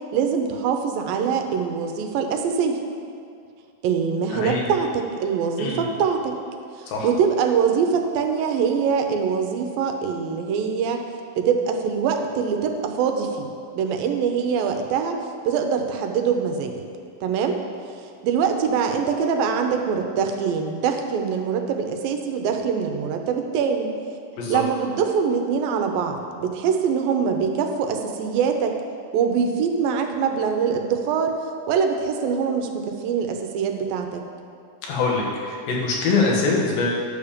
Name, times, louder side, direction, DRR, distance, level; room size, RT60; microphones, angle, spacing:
voice 1, 0.1-2.8 3.8-6.4 6.8-11.0 11.4-15.2 15.5-16.8 17.2-17.6 18.2-23.9 24.5-28.8 29.1-31.4 31.7-34.2, right 6 dB, 80° right, 5 dB, 2.5 m, -23 dB
voice 2, 4.3-4.7 5.6-5.8 6.9-7.1 24.4-24.6 34.8-37.1, left 3 dB, 85° left, -3 dB, 3.3 m, -23 dB
11.0 x 7.1 x 5.1 m, 2.3 s
omnidirectional pair, 4.1 m